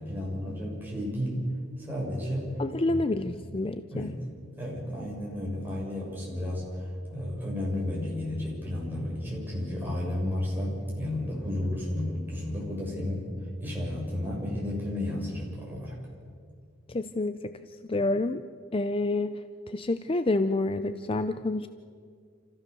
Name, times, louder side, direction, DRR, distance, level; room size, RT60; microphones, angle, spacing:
voice 1, 0.0-1.5 1.8-2.6 2.9-3.4 3.9-4.2 4.5-16.0, left 1 dB, 10° right, -4 dB, 6.8 m, -32 dB
voice 2, 2.6-4.1 16.9-17.6 17.9-18.4 18.7-19.4 19.7-21.7, left 2 dB, 30° left, 10 dB, 0.5 m, -28 dB
28.0 x 15.0 x 7.0 m, 2.1 s
head